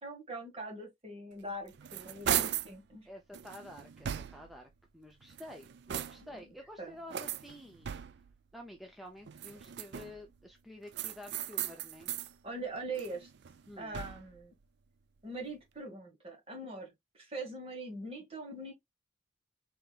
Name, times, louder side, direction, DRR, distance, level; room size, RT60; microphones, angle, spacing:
voice 1, 0.0-3.1 6.2-6.5 6.8-7.0 12.4-13.3 13.8-14.5 15.2-18.7, right 2 dB, 30° right, 2.0 m, -42 dB
sound 1, 1.4-2.8 3.3-4.6 5.2-6.4 7.1-8.4 9.3-10.3 10.9-12.3 12.7-14.4, right 10 dB, 55° right, 0.4 m, -38 dB
voice 2, 3.0-7.9 8.5-12.1 13.7-14.0, left 1 dB, ahead, 0.5 m, -50 dB
5.4 x 3.4 x 2.4 m
head